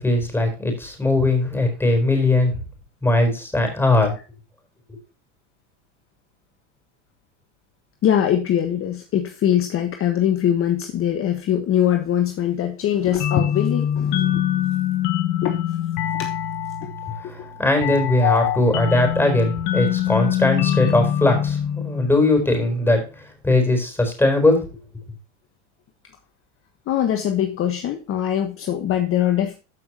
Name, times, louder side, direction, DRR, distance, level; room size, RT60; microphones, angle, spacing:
voice 1, 0.0-2.6 3.0-4.1 4.9-5.0 17.2-23.0 23.4-24.6, left 2 dB, 5° left, 4 dB, 4.4 m, -20 dB
voice 2, 8.0-14.7 15.4-15.6 16.2-16.3 16.8-16.9 18.2-18.6 26.9-29.6, left 10 dB, 35° left, 6 dB, 1.4 m, -22 dB
sound 1, 13.2-22.6, left 10 dB, 50° left, 1.5 m, -24 dB
14.0 x 6.0 x 2.9 m, 0.32 s
supercardioid pair, 115°, 37 cm